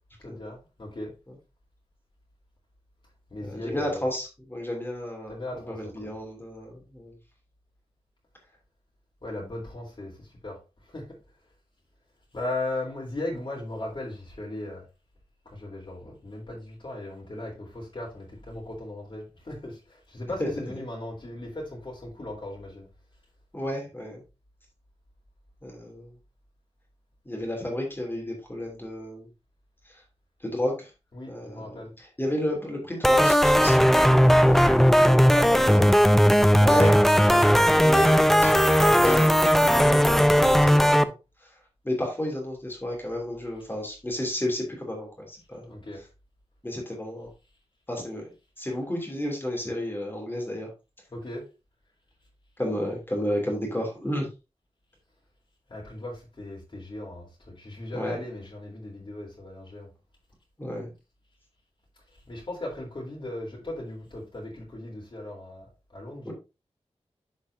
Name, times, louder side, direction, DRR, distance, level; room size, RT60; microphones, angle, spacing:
voice 1, 0.2-1.1 3.3-4.1 5.3-6.1 9.2-11.2 12.3-14.8 15.5-22.9 31.1-31.9 34.4-34.8 35.2-35.9 45.7-46.0 51.1-51.5 55.7-59.9 62.3-66.3, left 1 dB, 50° left, 3.6 m, -37 dB
voice 2, 3.4-7.1 23.5-24.2 25.6-26.1 27.2-29.3 30.4-30.9 31.3-34.1 35.7-35.8 36.6-39.3 39.6-41.1 41.8-45.7 46.6-47.3 47.9-48.3 48.6-50.7 52.6-54.3 57.9-58.1 60.6-60.9 66.2-66.3, left 1 dB, 20° left, 2.9 m, -32 dB
sound 1, 33.0-41.0, equal, 5° left, 0.5 m, -18 dB
11.0 x 5.3 x 2.7 m
wide cardioid pair, 90°, 11 cm